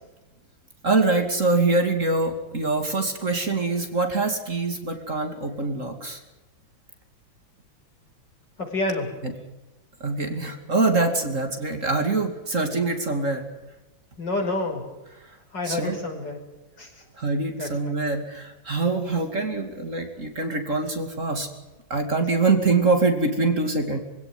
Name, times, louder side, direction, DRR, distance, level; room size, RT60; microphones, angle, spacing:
voice 1, 0.8-6.2 9.2-9.3 10.0-13.5 15.6-16.0 17.2-21.5 21.9-24.0, right 3 dB, 40° right, 5 dB, 2.9 m, -24 dB
voice 2, 8.6-9.1 14.2-14.8 15.5-16.4 16.8-16.9 17.6-17.9, left 2 dB, 60° left, 1 dB, 6.2 m, -28 dB
24.5 x 17.0 x 9.6 m, 1.1 s
omnidirectional pair, 2.1 m